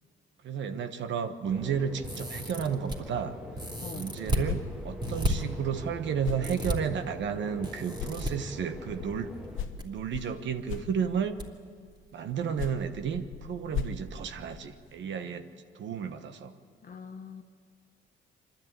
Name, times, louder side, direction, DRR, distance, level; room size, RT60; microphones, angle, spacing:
voice 1, 0.4-3.4 3.9-9.4 9.8-11.4 12.1-15.5 15.7-16.5, right 7 dB, 70° right, 9 dB, 1.2 m, -32 dB
sound 1, 1.5-9.7, left 1 dB, 5° right, 2.0 m, -44 dB
sound 2, 2.0-3.0 3.5-4.5 5.0-5.3 6.4-6.8 7.6-8.3 9.4-9.8 10.1-10.2 11.4-11.5 11.9-12.0, right 1 dB, 25° right, 3.0 m, -32 dB
sound 3, 4.4-7.7 7.9-11.5 12.3-15.0, left 8 dB, 80° left, 1.1 m, -40 dB
voice 2, 16.8-17.4, left 6 dB, 45° left, 6 dB, 1.5 m, -43 dB
25.0 x 12.0 x 8.9 m, 2.2 s
cardioid pair, 90°, 20 cm